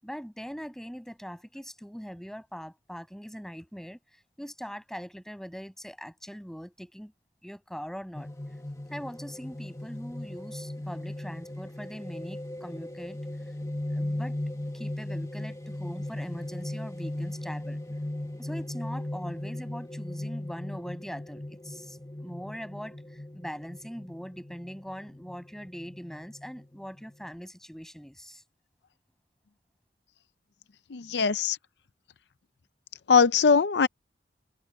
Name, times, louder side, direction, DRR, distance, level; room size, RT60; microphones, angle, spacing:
voice 1, 0.0-4.0 4.4-7.1 7.4-8.3 8.9-13.2 13.9-14.4 14.7-17.8 18.4-28.4, equal, 5° left, 7.1 m, -41 dB
sound 1, 8.1-27.3, left 1 dB, 20° left, 1.6 m, -38 dB
voice 2, 30.9-31.6 33.1-33.9, left 5 dB, 70° left, 0.5 m, -21 dB
head